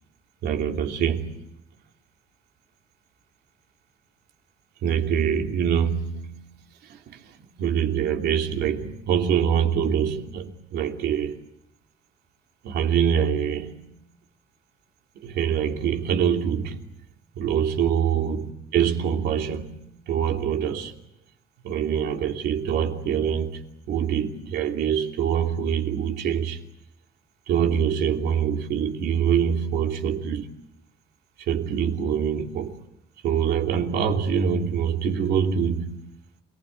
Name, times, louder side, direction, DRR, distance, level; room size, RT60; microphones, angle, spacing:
voice 1, 0.4-1.4 4.8-6.5 6.8-11.4 12.6-13.9 15.1-16.9 17.4-20.9 21.6-26.6 27.5-30.5 31.4-32.8 33.2-36.0, right 8 dB, 75° right, 2.9 m, -25 dB
28.0 x 19.5 x 9.5 m
cardioid pair, 110°, 17 cm